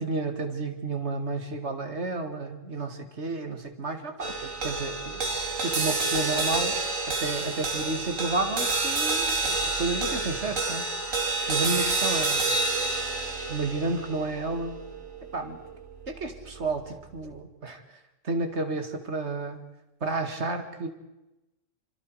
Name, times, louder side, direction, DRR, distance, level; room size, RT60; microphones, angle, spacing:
voice 1, 0.0-5.2 5.6-6.8 7.1-10.9 11.5-12.4 13.5-14.8 15.3-15.6 16.1-17.8 18.2-19.7 20.0-20.9, right 3 dB, 60° right, 7 dB, 2.3 m, -31 dB
sound 1, 4.2-16.7, right 3 dB, 80° right, 2.8 m, -29 dB
26.5 x 25.5 x 4.8 m, 0.97 s
omnidirectional pair, 1.3 m